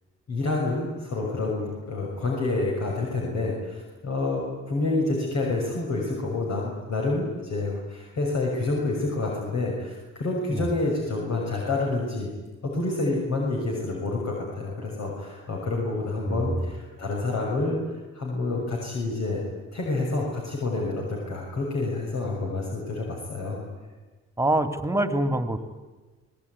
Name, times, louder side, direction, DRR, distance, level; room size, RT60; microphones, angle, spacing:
voice 1, 0.3-4.4 4.7-12.3 12.7-19.4 19.7-23.6, left 2 dB, 60° left, -2 dB, 6.4 m, -28 dB
voice 2, 16.3-16.6 24.4-25.6, right 1 dB, 10° right, 8 dB, 2.3 m, -25 dB
26.0 x 19.5 x 9.6 m, 1.3 s
cardioid pair, 90°, 30 cm